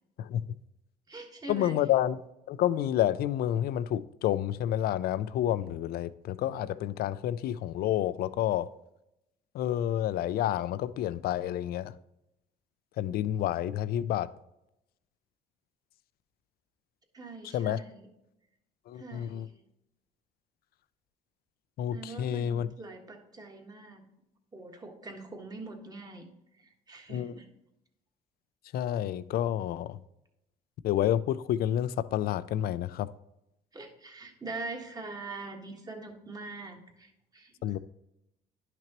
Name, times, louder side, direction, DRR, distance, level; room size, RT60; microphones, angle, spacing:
voice 1, 0.2-0.6 1.5-2.2 2.5-8.7 9.5-11.9 13.0-14.3 17.5-17.8 18.9-19.5 21.8-22.7 27.1-27.3 28.7-30.0 30.8-33.1 37.6-37.8, left 11 dB, 65° left, 0.4 m, -29 dB
voice 2, 1.1-1.8 17.1-18.1 18.9-19.5 21.9-24.0 24.5-26.3 26.5-27.5 33.7-37.5, right 3 dB, 20° right, 1.5 m, -43 dB
10.5 x 5.9 x 3.0 m
cardioid pair, 110°, 17 cm